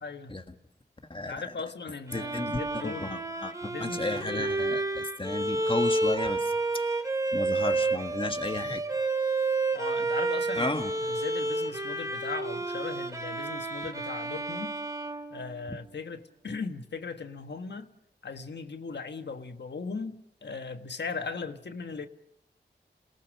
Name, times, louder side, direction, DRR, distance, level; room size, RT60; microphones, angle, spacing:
voice 1, 0.0-0.4 1.1-3.1 3.6-4.5 9.7-10.7 11.0-14.7 15.3-17.9 18.2-22.1, left 4 dB, 75° left, 1.5 m, -38 dB
voice 2, 1.1-1.5 2.1-6.5 7.3-8.8 10.6-10.9, left 2 dB, 30° left, 1.7 m, -33 dB
Bowed string instrument, 2.1-16.0, right 2 dB, 20° right, 2.3 m, -30 dB
27.5 x 18.5 x 6.3 m
cardioid pair, 55°, 18 cm